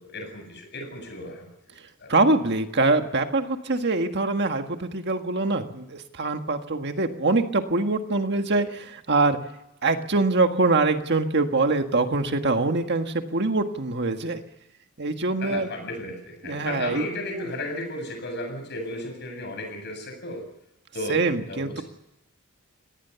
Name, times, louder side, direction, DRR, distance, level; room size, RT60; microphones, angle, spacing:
voice 1, 0.0-1.5 2.0-2.1 15.4-20.5 20.9-21.8, left 1 dB, 50° left, 5 dB, 7.8 m, -34 dB
voice 2, 2.1-9.4 9.8-14.4 15.0-15.7 16.4-17.0 17.3-17.5 21.1-21.8, right 3 dB, 50° right, 6 dB, 1.7 m, -24 dB
26.0 x 18.5 x 7.0 m, 0.88 s
head